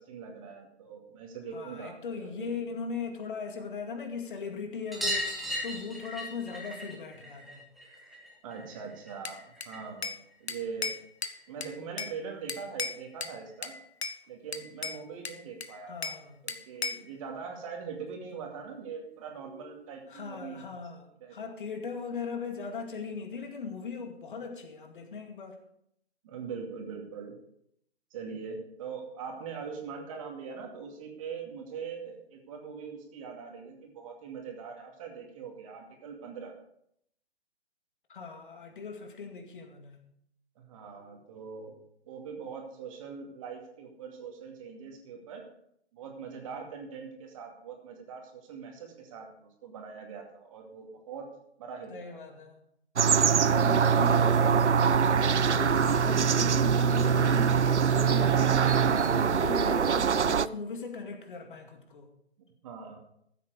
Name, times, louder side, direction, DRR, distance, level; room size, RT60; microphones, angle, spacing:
voice 1, 0.0-2.7 8.4-10.9 11.5-13.7 14.3-16.1 16.4-20.6 21.2-21.5 26.2-27.4 28.1-36.5 40.6-41.7 42.1-45.4 45.9-51.3 51.6-52.2 62.6-63.0, right 6 dB, 30° right, 2 dB, 2.4 m, -42 dB
voice 2, 1.5-7.7 15.9-16.4 20.1-25.6 38.1-40.1 51.9-52.6 53.4-62.1, left 5 dB, 50° left, 4 dB, 2.2 m, -38 dB
sound 1, 4.9-10.0 10.3-11.5 12.8-12.9 13.1-13.2 13.5-13.6 14.9-15.0 15.3-15.4 15.7-15.8 17.1-17.2 17.9-18.0, equal, ahead, 1.7 m, -38 dB
Bell / Glass, 9.2-10.2 10.5-12.2 12.5-13.4 13.6-14.2 14.5-16.2 16.5-17.1, left 5 dB, 70° left, 1.1 m, -36 dB
sound 2, 53.0-60.5, right 6 dB, 90° right, 0.5 m, -23 dB
14.5 x 8.3 x 4.9 m, 0.72 s
figure-of-eight pair, 140°, 34 cm